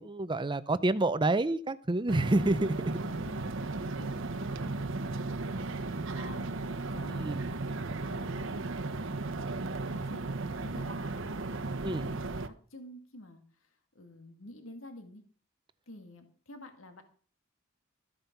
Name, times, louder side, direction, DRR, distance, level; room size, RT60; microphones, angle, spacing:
voice 1, 0.0-2.9 7.1-7.4 11.8-12.1, right 2 dB, 25° right, 0.6 m, -28 dB
sound 1, 2.1-12.5, right 3 dB, 70° right, 0.9 m, -35 dB
voice 2, 3.2-3.5 3.8-6.5 6.8-9.2 9.8-10.3 10.6-15.2 15.9-17.0, left 1 dB, 80° left, 1.9 m, -51 dB
14.0 x 9.0 x 5.9 m
head